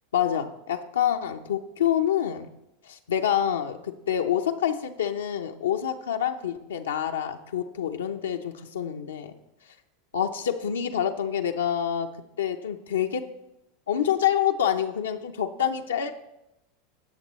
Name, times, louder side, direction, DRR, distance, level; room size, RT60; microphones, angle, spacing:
voice 1, 0.1-2.5 2.8-9.3 10.1-12.1 12.4-13.2 13.9-16.1, left 9 dB, 80° left, 3 dB, 0.6 m, -27 dB
17.0 x 6.6 x 3.1 m, 0.86 s
hypercardioid pair, 90°, 0 cm